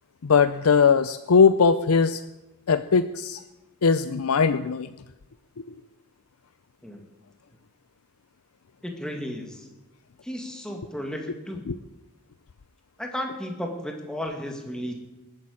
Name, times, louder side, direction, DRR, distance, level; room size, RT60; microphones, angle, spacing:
voice 1, 0.2-2.2 2.7-3.4 3.8-4.9 11.7-11.8, left 5 dB, 80° left, 12 dB, 0.5 m, -20 dB
voice 2, 8.8-9.7 10.2-11.6 13.0-14.9, equal, 5° left, 2 dB, 2.1 m, -34 dB
19.5 x 8.7 x 8.5 m, 1.0 s
head